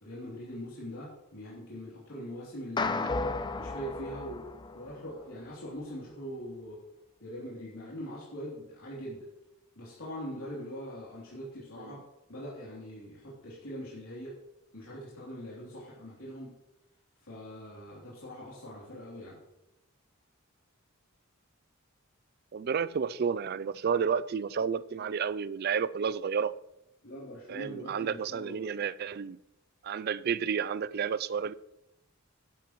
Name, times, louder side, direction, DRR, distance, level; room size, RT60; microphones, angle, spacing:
voice 1, 0.0-3.1 3.6-4.5 4.7-6.8 7.2-9.2 9.7-12.0 12.3-14.3 14.7-16.6 17.2-19.4 27.0-28.6, equal, 85° left, 3.2 m, -42 dB
sound 1, 2.8-5.2, left 3 dB, 20° left, 0.5 m, -33 dB
voice 2, 22.5-26.6 27.5-29.4 29.8-31.5, right 6 dB, 45° right, 0.3 m, -31 dB
11.5 x 11.0 x 3.1 m
head